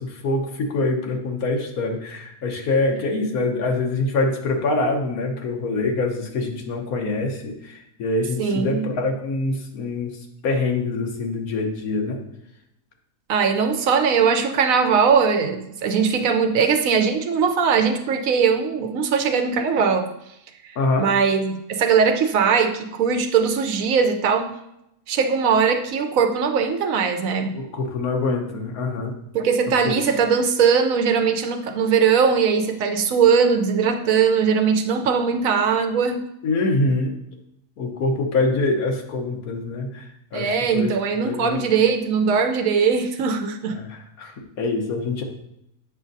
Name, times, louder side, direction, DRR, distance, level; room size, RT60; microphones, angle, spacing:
voice 1, 0.0-10.2 10.4-12.2 20.7-21.1 27.5-29.2 29.8-30.0 36.4-37.1 37.8-40.9 41.2-41.6 43.8-45.2, left 2 dB, 85° left, 3 dB, 1.4 m, -25 dB
voice 2, 8.4-8.9 13.3-20.1 21.0-24.6 25.1-27.6 29.3-36.2 40.3-43.8, right 6 dB, 75° right, 6 dB, 1.0 m, -20 dB
8.3 x 6.2 x 2.6 m, 0.82 s
omnidirectional pair, 1.5 m